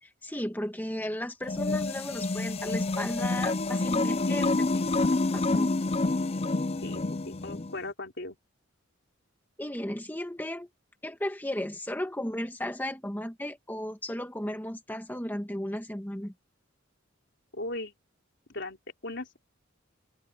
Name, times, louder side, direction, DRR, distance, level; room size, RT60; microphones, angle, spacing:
voice 1, 0.0-4.5 5.3-5.8 9.6-10.7 11.0-16.3, left 1 dB, 10° left, 1.9 m, -35 dB
sound 1, 1.4-7.7, left 2 dB, 30° left, 0.5 m, -28 dB
voice 2, 4.3-4.9 6.8-8.4 17.5-17.9 18.5-18.8 19.0-19.4, left 2 dB, 60° left, 4.0 m, -37 dB
open air
head